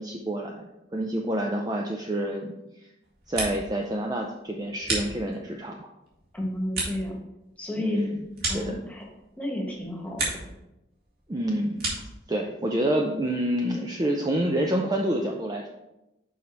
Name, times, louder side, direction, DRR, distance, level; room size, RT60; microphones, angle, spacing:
voice 1, 0.0-2.9 3.3-5.9 7.8-8.2 8.5-8.8 11.3-11.8 12.3-15.7, right 1 dB, 20° right, 1 dB, 0.4 m, -28 dB
sound 1, 3.0-3.9 4.2-5.6 6.0-9.3 9.7-10.6 10.9-12.2, right 2 dB, 50° right, 2.1 m, -34 dB
voice 2, 6.3-7.1 7.6-8.0 8.5-9.0 9.4-10.4, left 1 dB, 5° left, -1 dB, 1.3 m, -32 dB
6.3 x 5.4 x 4.3 m, 0.92 s
head